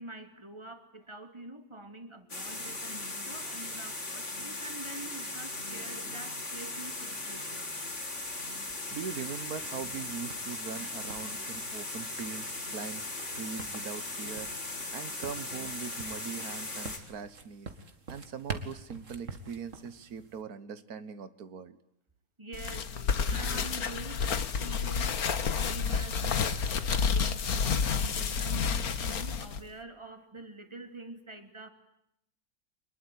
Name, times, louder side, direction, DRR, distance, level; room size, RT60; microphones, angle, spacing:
voice 1, 0.0-7.6 22.4-25.2 25.5-28.7 29.0-31.7, right 2 dB, 20° right, 7 dB, 2.9 m, -46 dB
sound 1, 2.3-17.0, left 2 dB, 55° left, 4.1 m, -38 dB
sound 2, 7.9-20.4, right 4 dB, 60° right, 2.5 m, -47 dB
voice 2, 8.9-13.0 13.4-17.7 18.1-21.8, right 6 dB, 90° right, 13 dB, 1.8 m, -41 dB
sound 3, 22.5-29.6, left 6 dB, 90° left, 1.9 m, -30 dB
25.5 x 21.0 x 9.5 m, 0.77 s
omnidirectional pair, 1.5 m